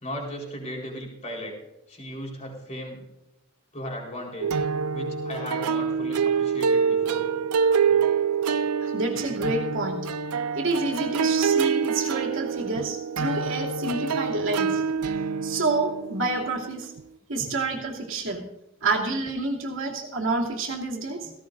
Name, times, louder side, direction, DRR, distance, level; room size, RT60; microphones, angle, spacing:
voice 1, 0.0-1.5 1.9-3.1 3.7-4.5 4.9-7.2 7.9-8.0, equal, 30° left, -1 dB, 4.2 m, -36 dB
sound 1, 4.4-17.0, right 6 dB, 90° right, 0.5 m, -26 dB
voice 2, 8.8-10.1 10.6-14.8 15.4-16.9 17.3-18.5 18.8-21.3, right 3 dB, 60° right, -1 dB, 2.7 m, -28 dB
17.5 x 16.5 x 2.6 m, 0.96 s
head